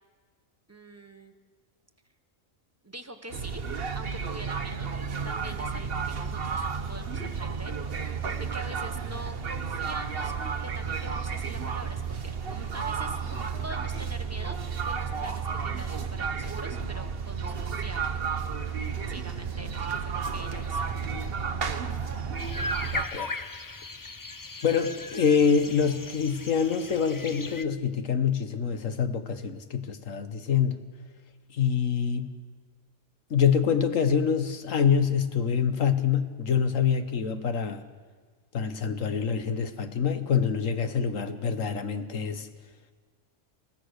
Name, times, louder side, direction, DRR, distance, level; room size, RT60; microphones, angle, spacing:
voice 1, 0.7-1.3 2.8-3.6 3.9-4.9 5.2-7.8 8.4-13.2 13.6-18.0 19.1-20.8, right 1 dB, 10° right, 6 dB, 1.2 m, -44 dB
sound 1, 3.3-23.1, right 6 dB, 50° right, 1.3 m, -32 dB
sound 2, 22.4-27.6, left 3 dB, 25° left, 0.5 m, -38 dB
voice 2, 22.9-23.3 24.6-30.8 31.5-32.3 33.3-37.8 38.5-42.5, left 7 dB, 85° left, 9 dB, 1.7 m, -26 dB
29.0 x 15.5 x 6.6 m, 1.5 s
omnidirectional pair, 1.3 m